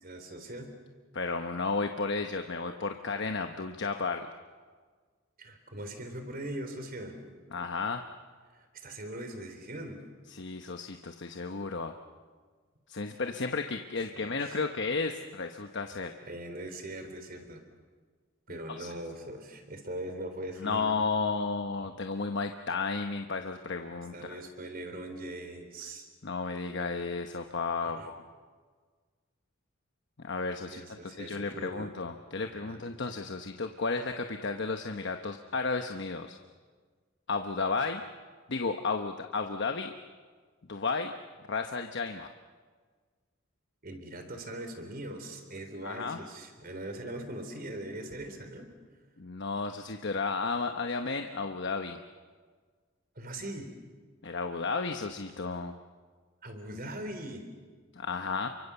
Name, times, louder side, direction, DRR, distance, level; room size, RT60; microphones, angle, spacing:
voice 1, 0.0-0.7 5.4-7.2 8.5-10.0 14.1-14.5 16.2-17.6 18.5-20.8 24.1-26.1 27.9-28.1 30.7-31.9 32.6-32.8 43.8-48.7 53.2-53.7 56.4-57.4, right 1 dB, 45° right, 7 dB, 3.7 m, -41 dB
voice 2, 1.1-4.3 7.5-8.0 10.3-11.9 12.9-16.1 18.7-18.9 20.6-24.4 26.2-28.2 30.2-36.4 37.3-38.0 38.5-39.9 40.7-41.1 41.5-42.3 45.8-46.2 49.2-52.0 54.2-55.8 57.9-58.5, left 4 dB, 60° left, 5 dB, 1.0 m, -33 dB
29.0 x 24.5 x 7.0 m, 1.5 s
head